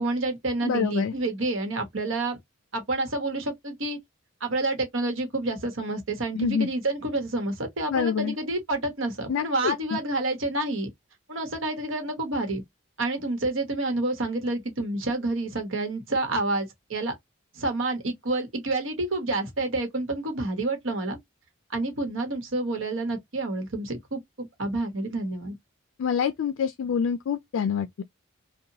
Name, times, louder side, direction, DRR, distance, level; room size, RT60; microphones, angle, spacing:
voice 1, 0.0-2.4 2.7-4.0 4.4-10.9 11.3-12.6 13.0-17.1 17.5-21.2 21.7-25.5, right 2 dB, 75° right, 1.1 m, -29 dB
voice 2, 0.6-1.1 6.3-6.7 7.9-8.4 9.3-10.0 26.0-28.0, left 7 dB, 80° left, 0.3 m, -26 dB
2.8 x 2.2 x 2.7 m
head